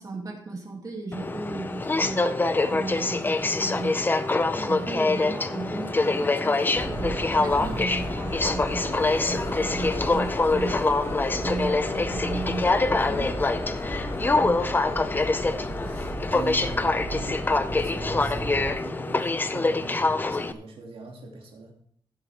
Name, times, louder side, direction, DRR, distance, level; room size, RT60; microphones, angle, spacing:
voice 1, 0.0-4.0 4.5-13.3 14.2-14.7, right 3 dB, 40° right, -1 dB, 2.6 m, -36 dB
Aircraft, 1.1-20.5, left 3 dB, 20° left, 0.6 m, -25 dB
sound 1, 4.1-18.8, left 2 dB, 40° left, 2.8 m, -38 dB
sound 2, 6.7-18.7, right 1 dB, 25° right, 1.8 m, -36 dB
voice 2, 15.4-21.7, right 2 dB, 85° right, -1 dB, 2.7 m, -41 dB
16.0 x 8.1 x 3.5 m, 0.62 s
wide cardioid pair, 165°, 9 cm